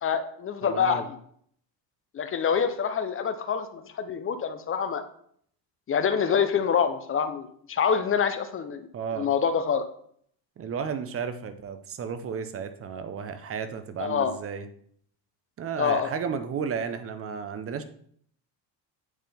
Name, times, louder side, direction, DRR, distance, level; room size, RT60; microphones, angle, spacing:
voice 1, 0.0-1.2 2.1-5.0 5.9-8.9 9.2-9.9 14.0-14.3 15.8-16.1, left 7 dB, 30° left, 9 dB, 0.5 m, -26 dB
voice 2, 0.6-1.1 8.9-9.3 10.6-14.7 15.6-17.8, right 6 dB, 30° right, 10 dB, 0.6 m, -33 dB
9.2 x 3.6 x 3.5 m, 0.64 s
cardioid pair, 125°, 46 cm